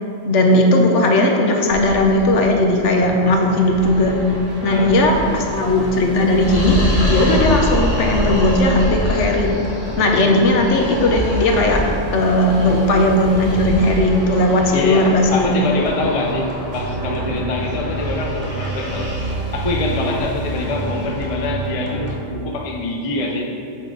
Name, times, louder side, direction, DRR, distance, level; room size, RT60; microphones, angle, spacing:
voice 1, 0.3-4.1 4.6-6.8 7.1-9.5 10.0-11.8 12.1-15.5, left 1 dB, 70° left, 2 dB, 1.0 m, -16 dB
sound 1, 1.7-21.4, equal, 10° left, 1.3 m, -27 dB
sound 2, 3.0-22.1, right 2 dB, 50° right, 1.2 m, -31 dB
voice 2, 4.6-4.9 14.7-19.1 19.5-23.5, left 2 dB, 45° left, 1 dB, 0.4 m, -24 dB
8.5 x 3.6 x 3.8 m, 2.5 s
omnidirectional pair, 1.3 m